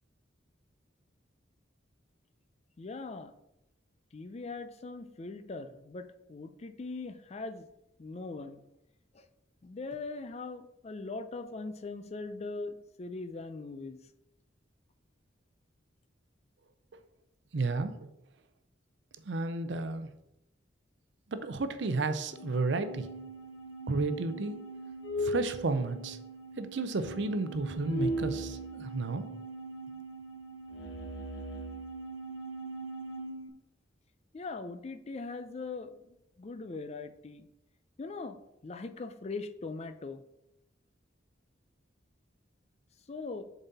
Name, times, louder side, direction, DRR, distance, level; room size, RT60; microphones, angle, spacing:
voice 1, 2.8-3.3 4.1-7.7 8.0-8.6 9.1-9.3 9.6-14.0 34.3-37.5 38.0-38.4 38.6-40.2 43.1-43.4, left 3 dB, 35° left, 9 dB, 0.4 m, -41 dB
voice 2, 17.5-17.9 19.3-20.1 21.3-23.1 23.9-24.5 25.2-26.2 26.6-29.3, right 3 dB, 65° right, 11 dB, 0.6 m, -32 dB
sound 1, 22.3-33.5, right 1 dB, 70° left, 0.7 m, -39 dB
7.3 x 4.1 x 4.0 m, 0.86 s
head